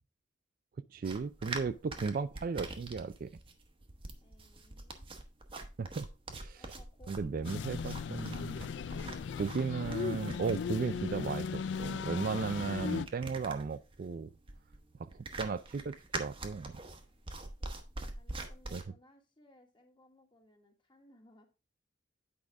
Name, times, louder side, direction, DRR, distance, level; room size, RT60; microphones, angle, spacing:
voice 1, 0.9-3.3 5.8-6.6 7.1-8.7 9.3-14.3 15.0-16.8 18.7-18.8, right 5 dB, 50° right, 0.3 m, -36 dB
sound 1, 1.0-18.8, right 2 dB, 30° right, 0.9 m, -45 dB
voice 2, 4.2-5.1 6.5-8.5 17.6-17.9 18.1-21.5, left 1 dB, 25° left, 1.4 m, -63 dB
sound 2, 7.4-13.1, left 6 dB, 70° left, 0.4 m, -37 dB
8.6 x 4.9 x 3.4 m
head